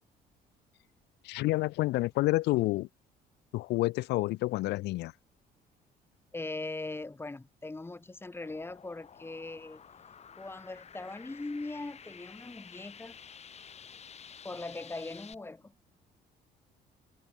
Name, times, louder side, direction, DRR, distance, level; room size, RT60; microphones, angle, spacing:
voice 1, 1.2-2.9 3.5-5.1, left 19 dB, 85° left, 1.7 m, -29 dB
voice 2, 6.3-9.8 10.4-13.2 14.4-15.7, left 2 dB, 15° left, 2.5 m, -40 dB
sound 1, 8.4-15.3, left 7 dB, 40° left, 6.6 m, -51 dB
cardioid pair, 110°, 17 cm